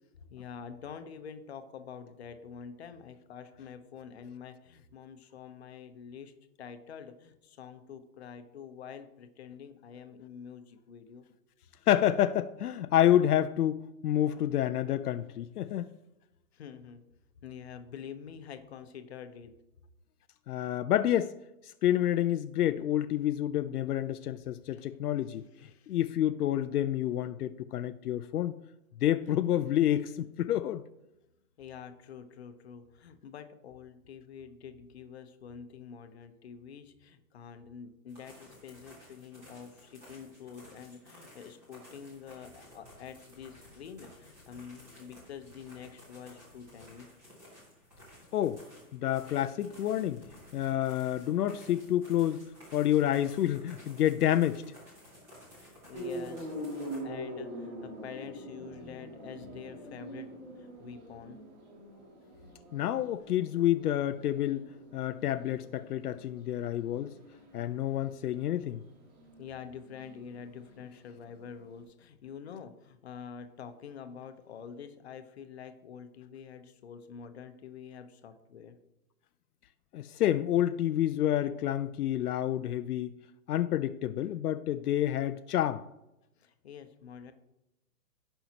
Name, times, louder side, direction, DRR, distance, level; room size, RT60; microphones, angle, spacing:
voice 1, 0.3-6.3 6.6-11.3 16.5-17.0 17.4-19.5 24.7-24.9 25.6-26.0 31.6-47.1 55.9-61.4 69.4-78.8 86.4-87.3, left 7 dB, 45° left, 0.9 m, -47 dB
voice 2, 11.9-15.9 20.5-21.3 21.8-25.4 25.9-28.6 29.0-30.8 48.3-48.6 48.9-50.2 50.5-52.4 52.7-54.6 62.7-67.1 67.5-68.8 79.9-83.1 83.5-85.8, left 12 dB, 80° left, 0.6 m, -28 dB
sound 1, 38.1-57.0, left 1 dB, 5° right, 0.8 m, -55 dB
sound 2, 55.9-71.8, equal, 30° right, 2.7 m, -45 dB
16.5 x 5.7 x 2.9 m
hypercardioid pair, 180°, 45 cm